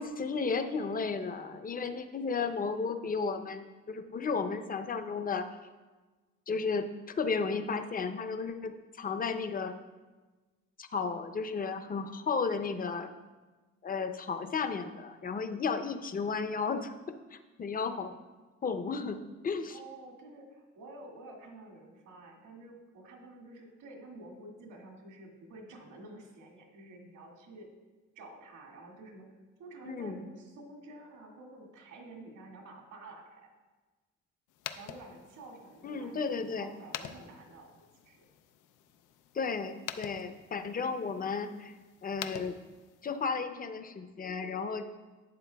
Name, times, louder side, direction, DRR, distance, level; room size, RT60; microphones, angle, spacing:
voice 1, 0.0-5.4 6.5-8.7 9.0-9.7 10.8-13.1 13.8-16.9 17.3-18.2 18.6-19.2 19.4-19.8 29.9-30.2 35.8-36.7 39.3-41.7 42.0-42.5 43.0-44.9, left 5 dB, 30° left, 8 dB, 0.6 m, -33 dB
voice 2, 19.7-27.7 28.1-29.3 29.6-33.5 34.7-37.7 38.0-38.3, right 2 dB, 80° right, 0 dB, 2.1 m, -50 dB
sound 1, 34.5-43.2, left 11 dB, 90° left, 0.5 m, -47 dB
11.5 x 7.9 x 2.3 m, 1.3 s
cardioid pair, 90°, 30 cm